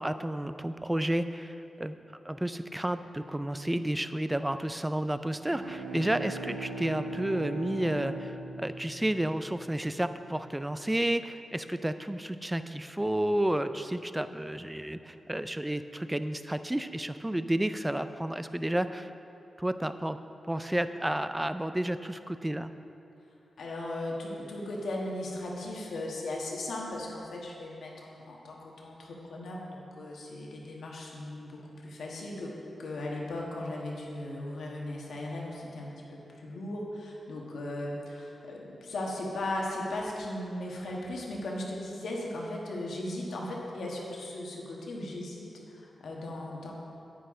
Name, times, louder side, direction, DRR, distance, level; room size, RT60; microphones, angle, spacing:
voice 1, 0.0-2.0 2.2-8.3 8.6-19.1 19.6-20.2 20.5-22.7, right 1 dB, 10° right, 11 dB, 0.4 m, -31 dB
Bowed string instrument, 5.5-10.0, right 3 dB, 80° right, 1.5 m, -40 dB
voice 2, 23.6-32.5 32.8-46.7, left 1 dB, 85° left, -2 dB, 1.6 m, -37 dB
9.3 x 9.2 x 3.8 m, 2.9 s
cardioid pair, 80°, 0 cm